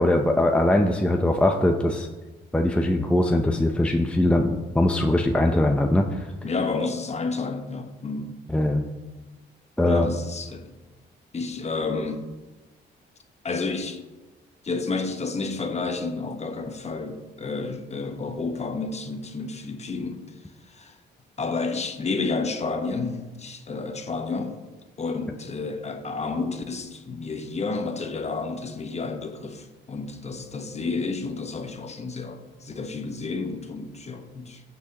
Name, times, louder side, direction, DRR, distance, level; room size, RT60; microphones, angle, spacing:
voice 1, 0.0-2.1 2.5-6.3 8.5-8.8 9.8-10.1, left 1 dB, 5° left, 3 dB, 0.6 m, -21 dB
voice 2, 6.4-8.3 9.8-10.7 11.3-12.2 13.4-14.0 14.6-20.2 20.7-20.9 21.4-24.6 25.0-34.6, left 4 dB, 35° left, 6 dB, 1.2 m, -30 dB
16.0 x 6.0 x 2.9 m, 1.2 s
cardioid pair, 90°, 20 cm